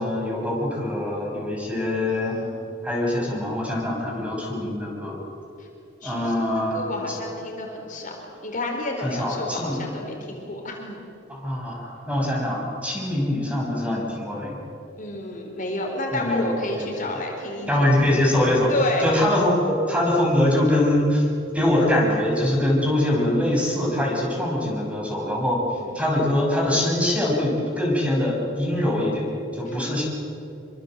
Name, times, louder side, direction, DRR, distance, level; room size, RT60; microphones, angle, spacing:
voice 1, 0.0-2.4 2.8-5.2 6.0-6.8 9.0-9.8 11.3-14.6 16.1-17.0 17.7-18.7 19.0-21.3 21.5-25.6 25.9-29.2 29.5-30.1, left 1 dB, 5° right, -2 dB, 6.1 m, -23 dB
voice 2, 2.1-2.7 5.6-5.7 6.0-10.9 15.0-17.9 18.7-19.3 25.7-25.9 29.7-30.0, left 1 dB, 45° left, 1 dB, 4.4 m, -30 dB
27.0 x 24.5 x 7.6 m, 2.8 s
head